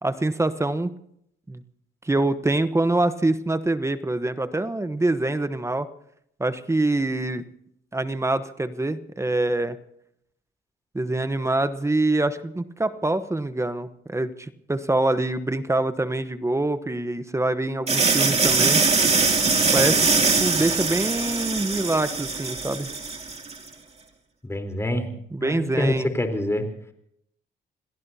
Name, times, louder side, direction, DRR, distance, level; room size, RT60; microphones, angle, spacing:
voice 1, 0.0-0.9 1.5-1.6 2.0-5.9 6.4-7.4 7.9-9.8 10.9-18.8 19.7-20.1 20.4-22.9 25.3-26.1, right 2 dB, 15° right, 11 dB, 1.0 m, -25 dB
sound 1, 17.9-23.6, right 4 dB, 30° right, 2.7 m, -22 dB
voice 2, 24.4-25.1 25.4-26.6, left 1 dB, 15° left, 5 dB, 3.8 m, -26 dB
28.0 x 18.5 x 2.8 m, 0.72 s
cardioid pair, 90°, 20 cm